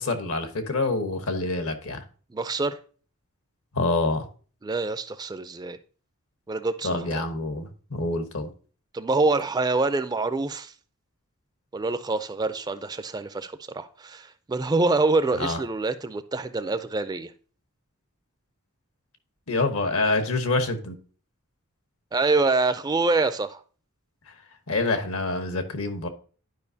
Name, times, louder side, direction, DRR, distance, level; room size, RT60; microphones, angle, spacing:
voice 1, 0.0-2.0 3.7-4.2 6.8-8.5 15.4-15.6 19.5-21.0 24.7-26.1, left 2 dB, 70° left, 1.1 m, -26 dB
voice 2, 2.3-2.8 4.6-5.8 6.5-7.2 8.9-10.7 11.7-17.3 22.1-23.6, right 3 dB, 20° right, 0.3 m, -26 dB
11.0 x 5.0 x 2.7 m
head